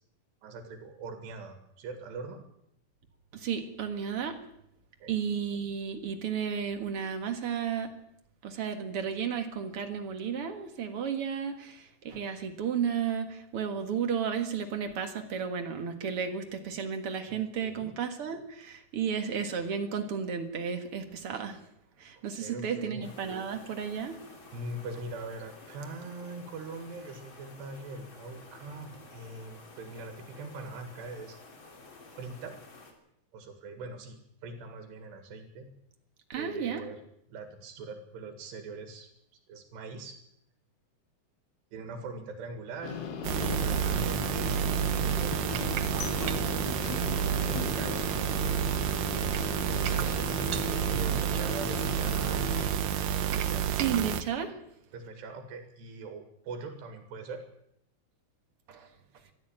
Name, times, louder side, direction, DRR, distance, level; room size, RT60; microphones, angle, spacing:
voice 1, 0.4-2.4 5.0-5.2 17.3-17.9 22.4-23.1 24.5-31.4 32.2-32.6 33.3-35.8 36.3-37.0 37.3-39.1 39.5-40.2 41.7-46.7 47.2-48.6 49.6-52.5 53.3-53.7 54.9-57.4, right 3 dB, 85° right, 7 dB, 4.1 m, -42 dB
voice 2, 3.3-4.4 5.1-7.9 8.4-21.6 22.0-24.2 36.3-36.8 53.8-54.6 58.7-58.9, right 7 dB, 50° right, 6 dB, 1.8 m, -33 dB
sound 1, 23.0-32.9, left 3 dB, 35° left, 3.3 m, -52 dB
sound 2, 42.8-52.7, left 6 dB, 80° left, 3.9 m, -37 dB
sound 3, 43.2-54.2, right 9 dB, 70° right, 1.7 m, -29 dB
22.0 x 14.0 x 8.9 m, 0.75 s
omnidirectional pair, 4.7 m